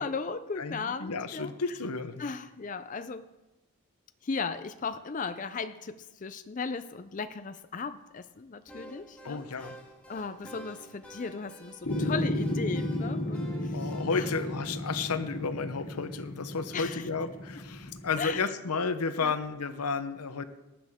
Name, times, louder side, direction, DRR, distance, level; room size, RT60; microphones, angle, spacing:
voice 1, 0.0-1.5 2.2-3.3 4.2-9.7 10.1-14.3 16.7-17.1 18.2-18.5 19.2-19.4, left 4 dB, 35° left, 10 dB, 0.4 m, -36 dB
voice 2, 0.6-2.2 9.2-9.8 13.7-20.4, left 4 dB, 90° left, 11 dB, 0.8 m, -32 dB
sound 1, 8.7-14.7, right 1 dB, 5° left, 2.4 m, -49 dB
sound 2, 11.8-18.3, left 1 dB, 65° left, 2.4 m, -34 dB
19.0 x 10.5 x 3.6 m, 1.1 s
head